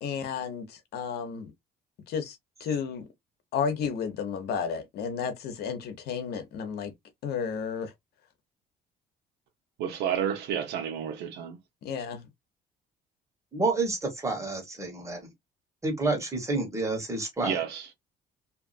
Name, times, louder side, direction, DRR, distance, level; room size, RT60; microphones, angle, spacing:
voice 1, 0.0-1.5 2.1-3.1 3.5-6.9 7.2-7.9 11.8-12.3, left 6 dB, 70° left, 0.9 m, -32 dB
voice 2, 9.8-11.6 17.4-17.9, right 8 dB, 85° right, 1.0 m, -30 dB
voice 3, 13.5-15.3 15.8-17.6, right 3 dB, 15° right, 1.5 m, -29 dB
2.8 x 2.5 x 2.6 m
cardioid pair, 110°, 17 cm